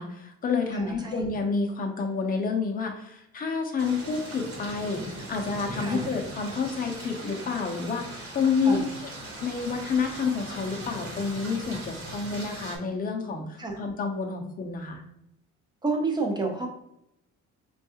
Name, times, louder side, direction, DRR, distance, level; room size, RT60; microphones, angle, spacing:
voice 1, 0.0-8.8 9.4-15.0, left 5 dB, 30° left, 3 dB, 0.5 m, -29 dB
voice 2, 0.7-1.2 5.8-6.1 8.7-8.8 13.6-13.8 15.8-16.7, right 3 dB, 15° right, 1 dB, 0.6 m, -29 dB
sound 1, 3.8-12.8, right 1 dB, 50° right, 1.1 m, -39 dB
4.4 x 2.3 x 2.8 m, 0.80 s
cardioid pair, 150°, 30 cm